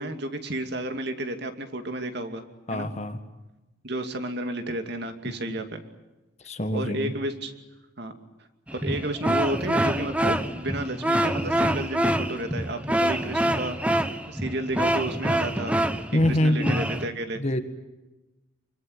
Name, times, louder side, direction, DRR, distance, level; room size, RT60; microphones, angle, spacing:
voice 1, 0.0-2.4 2.7-2.9 3.8-5.8 6.7-7.5 8.0-8.1 8.7-15.8 16.2-17.6, right 1 dB, 55° right, 6 dB, 2.6 m, -32 dB
voice 2, 2.7-3.2 5.4-5.6 6.4-7.1 16.1-16.8 17.4-17.6, left 1 dB, 35° left, 8 dB, 1.7 m, -25 dB
sound 1, 8.7-17.1, right 1 dB, 5° right, 1.1 m, -26 dB
26.0 x 24.0 x 8.2 m, 1.1 s
head